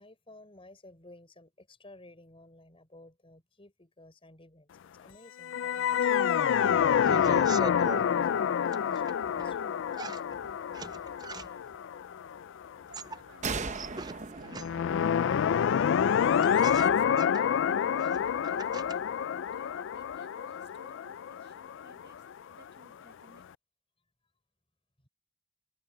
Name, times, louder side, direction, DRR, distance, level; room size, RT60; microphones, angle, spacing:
voice 1, 0.0-9.9 25.0-25.1, left 1 dB, 25° left, 5.1 m, -55 dB
sound 1, 5.4-12.7 14.5-22.3, left 8 dB, 60° left, 0.3 m, -28 dB
sound 2, 6.8-8.1 8.7-9.6 9.9-11.8 12.7-15.0 15.9-16.0 16.2-19.1 19.5-20.2, right 4 dB, 20° right, 0.4 m, -42 dB
voice 2, 12.8-15.1 15.5-19.0 19.5-22.2 22.5-23.4, right 2 dB, 55° right, 7.5 m, -59 dB
sound 3, 13.4-17.0, right 4 dB, 35° right, 0.8 m, -39 dB
head